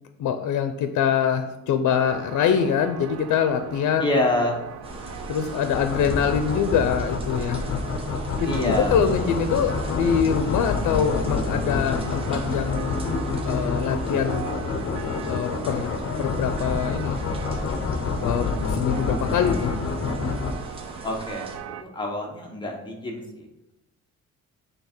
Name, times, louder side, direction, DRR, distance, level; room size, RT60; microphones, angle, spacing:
voice 1, 0.2-4.0 5.3-7.6 8.4-12.9 13.5-14.4 15.3-17.2 18.2-19.7, left 7 dB, 90° left, 8 dB, 0.5 m, -24 dB
sound 1, 1.9-21.8, right 10 dB, 70° right, 0.5 m, -40 dB
voice 2, 4.0-4.6 8.4-9.5 21.0-21.5 21.8-23.5, left 1 dB, 15° left, 0 dB, 0.9 m, -27 dB
sound 2, 4.8-21.6, right 1 dB, 20° right, 0.9 m, -39 dB
sound 3, 5.7-20.5, left 4 dB, 50° left, 0.8 m, -28 dB
8.0 x 3.3 x 4.3 m, 0.93 s
cardioid pair, 180°, 30 cm